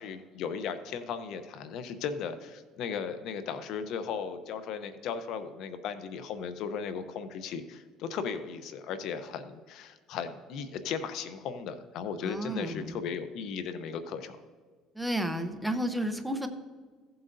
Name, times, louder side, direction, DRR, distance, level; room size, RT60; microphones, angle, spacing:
voice 1, 0.0-14.4, left 6 dB, 65° left, 10 dB, 0.7 m, -36 dB
voice 2, 12.2-12.9 14.9-16.5, right 1 dB, 5° right, 6 dB, 0.8 m, -32 dB
16.0 x 7.8 x 2.6 m, 1.5 s
cardioid pair, 115°, 0 cm